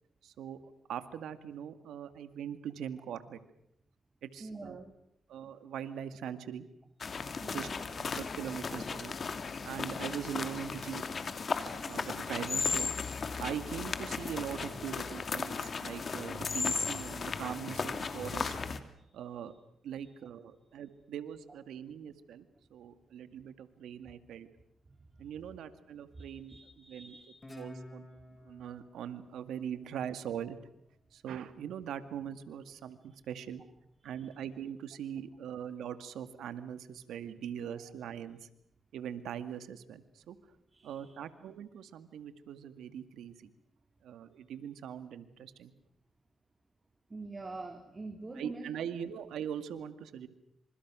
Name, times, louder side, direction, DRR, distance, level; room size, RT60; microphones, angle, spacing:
voice 1, 0.2-0.6 0.9-3.4 4.2-4.9 5.3-6.7 7.5-7.7 8.0-9.2 9.6-11.0 11.8-12.9 13.4-18.5 19.1-19.5 19.8-22.5 22.7-24.5 25.2-26.5 26.9-27.2 27.6-28.1 28.4-30.6 31.1-33.6 34.0-38.5 38.9-40.4 40.8-43.5 44.0-45.7 48.4-50.3, right 9 dB, 85° right, 11 dB, 2.0 m, -41 dB
voice 2, 4.4-4.9 7.4-7.9 18.9-19.5 19.9-20.1 24.9-25.0 26.1-27.6 34.0-34.3 40.7-41.2 47.1-48.7, right 3 dB, 30° right, 6 dB, 3.1 m, -46 dB
sound 1, 7.0-18.8, left 5 dB, 50° left, 2.6 m, -36 dB
Guitar, 27.4-30.7, left 1 dB, 25° left, 4.9 m, -52 dB
28.5 x 26.5 x 6.3 m, 0.75 s
cardioid pair, 70°, 0 cm